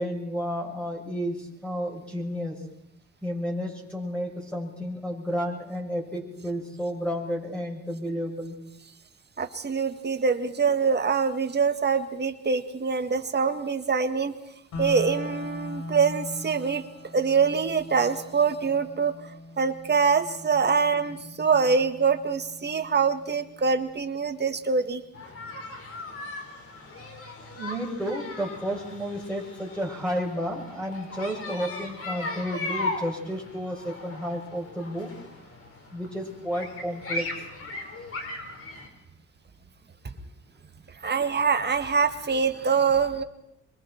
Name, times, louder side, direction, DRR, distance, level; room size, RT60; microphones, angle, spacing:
voice 1, 0.0-2.6 3.2-8.5 27.5-35.1 35.9-37.3, equal, 5° left, -2 dB, 6.8 m, -31 dB
voice 2, 9.4-14.3 14.8-16.8 17.1-19.1 19.6-25.0 41.0-43.2, right 5 dB, 35° right, 7 dB, 1.8 m, -24 dB
sound 1, 14.7-24.7, left 1 dB, 80° left, 7.1 m, -41 dB
sound 2, 25.1-38.9, left 2 dB, 50° left, 5.2 m, -38 dB
25.5 x 23.5 x 4.6 m, 0.78 s
cardioid pair, 90°, 30 cm